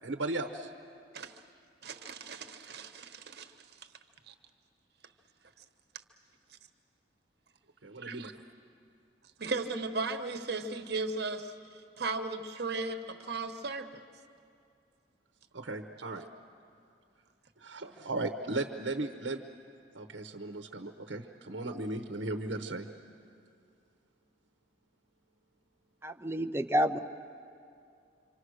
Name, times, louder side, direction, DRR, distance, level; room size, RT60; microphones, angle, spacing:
voice 1, 0.0-0.7 7.8-8.3 15.5-16.2 17.6-19.4 19.9-22.9, right 2 dB, 80° right, 6 dB, 1.0 m, -36 dB
voice 2, 1.8-3.9 4.3-4.4 6.5-6.6 8.0-8.3 9.4-14.0, right 3 dB, 60° right, 7 dB, 1.3 m, -37 dB
voice 3, 26.0-27.0, equal, 15° right, 7 dB, 0.6 m, -29 dB
26.5 x 25.5 x 6.4 m, 2.4 s
head